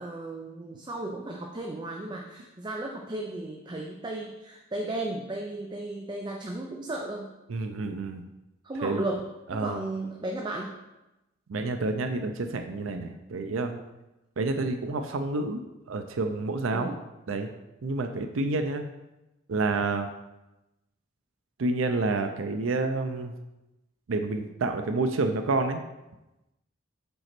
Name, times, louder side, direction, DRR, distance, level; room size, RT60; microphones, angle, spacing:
voice 1, 0.0-7.3 8.6-9.2 9.6-10.7 16.7-17.0, right 2 dB, 20° right, 1 dB, 0.5 m, -34 dB
voice 2, 7.5-8.2 8.8-9.0 9.5-9.9 11.5-13.8 14.4-15.6 15.9-17.0 17.3-17.5 17.8-18.9 19.5-20.1 21.6-23.3 24.1-25.8, right 3 dB, 75° right, 7 dB, 0.5 m, -29 dB
5.4 x 4.2 x 5.9 m, 0.98 s
head